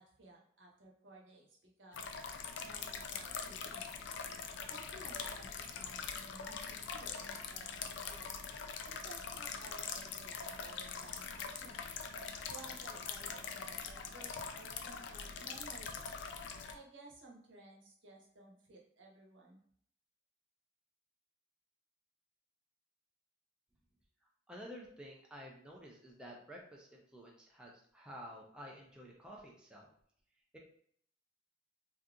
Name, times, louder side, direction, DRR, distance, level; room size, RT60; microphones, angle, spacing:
voice 1, 0.0-2.1 2.6-4.0 4.7-8.3 8.8-11.8 12.5-16.0 16.7-19.6, right 2 dB, 65° right, -1 dB, 0.9 m, -56 dB
sound 1, 1.9-16.7, left 6 dB, 65° left, 0.4 m, -43 dB
voice 2, 24.5-29.9 30.5-30.6, equal, 5° right, -2 dB, 0.4 m, -51 dB
2.7 x 2.4 x 3.6 m, 0.63 s
head